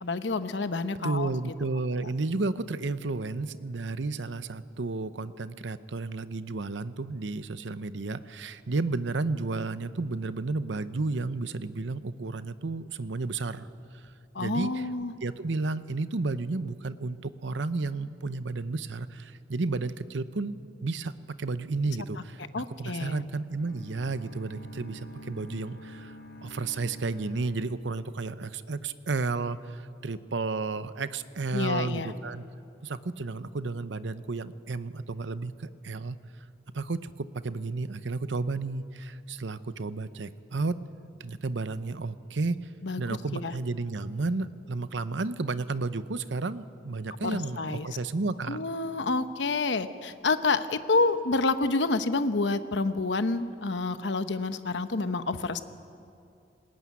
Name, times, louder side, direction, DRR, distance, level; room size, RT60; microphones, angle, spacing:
voice 1, 0.0-1.3 14.3-15.1 22.5-23.2 31.5-32.1 42.8-43.1 43.3-43.5 47.2-47.9 48.5-55.6, left 3 dB, 75° left, 11 dB, 0.9 m, -28 dB
voice 2, 1.0-13.7 14.4-14.8 15.2-21.1 21.4-26.1 26.4-32.4 32.8-35.5 35.8-36.2 36.7-40.8 41.2-42.6 43.0-48.6, right 3 dB, 80° right, 13 dB, 0.8 m, -32 dB
sound 1, 23.6-28.6, equal, 55° left, 1.7 m, -48 dB
20.0 x 19.0 x 9.4 m, 2.5 s
head